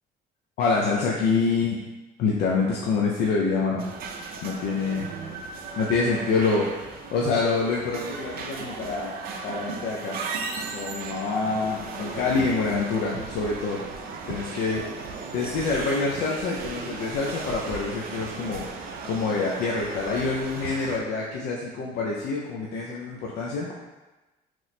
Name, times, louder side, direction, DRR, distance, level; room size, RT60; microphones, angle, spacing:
voice 1, 0.6-1.8 2.2-3.8 4.4-5.1 5.8-9.2 9.4-10.2 10.7-13.8 14.3-23.7, left 4 dB, 70° left, -3 dB, 0.5 m, -26 dB
sound 1, 3.8-21.0, right 4 dB, 65° right, 0.4 m, -36 dB
3.0 x 2.0 x 4.0 m, 1.1 s
cardioid pair, 110°, 17 cm